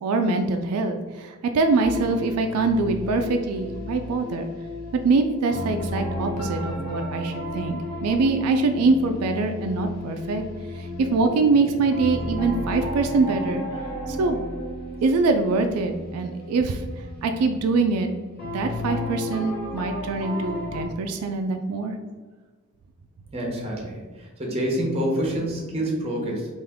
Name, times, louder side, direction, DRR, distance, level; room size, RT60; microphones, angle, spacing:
voice 1, 0.0-4.5 4.9-10.4 10.7-13.6 14.1-14.4 15.0-16.8 17.2-18.1 18.5-21.9, right 3 dB, 80° right, 5 dB, 0.3 m, -23 dB
sound 1, 1.8-20.9, left 1 dB, 45° left, 0.8 m, -33 dB
voice 2, 23.3-26.5, equal, 25° right, -1 dB, 0.8 m, -27 dB
3.5 x 2.5 x 3.5 m, 1.4 s
head